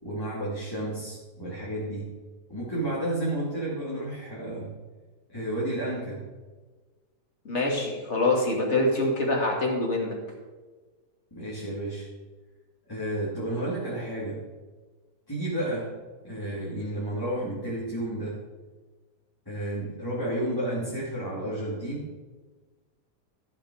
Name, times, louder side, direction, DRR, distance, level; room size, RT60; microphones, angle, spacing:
voice 1, 0.0-2.1 2.5-4.7 5.3-6.2 11.3-12.1 12.9-14.4 15.3-15.9 16.2-18.3 19.5-22.1, right 1 dB, 15° left, -8 dB, 2.8 m, -31 dB
voice 2, 7.4-10.1, left 2 dB, 40° left, 0 dB, 2.5 m, -25 dB
14.5 x 7.1 x 4.9 m, 1.3 s
omnidirectional pair, 1.8 m